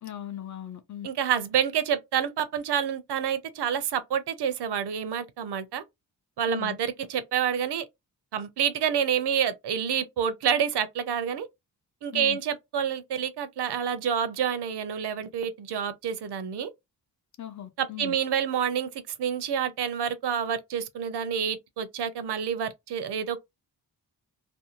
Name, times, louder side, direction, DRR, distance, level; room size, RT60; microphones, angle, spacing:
voice 1, 0.0-1.1 6.5-6.8 12.1-12.4 17.4-18.2, left 11 dB, 45° left, 0.5 m, -38 dB
voice 2, 1.0-5.8 6.4-7.8 8.3-11.5 12.0-16.7 17.8-23.4, right 8 dB, 75° right, 0.6 m, -28 dB
2.6 x 2.2 x 2.8 m
wide cardioid pair, 160°, 41 cm